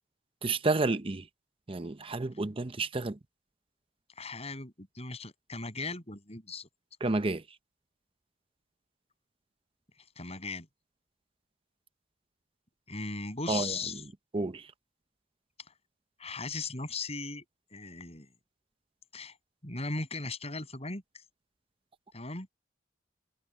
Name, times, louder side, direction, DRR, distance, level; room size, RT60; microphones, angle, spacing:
voice 1, 0.4-1.2 1.7-3.2 7.0-7.4 13.5-13.7 14.3-14.6, right 3 dB, 30° right, 0.7 m, -30 dB
voice 2, 4.2-6.7 10.2-10.7 12.9-14.0 16.2-17.4 17.7-18.3 19.1-19.4 19.6-21.2 22.1-22.5, left 3 dB, 35° left, 7.7 m, -38 dB
head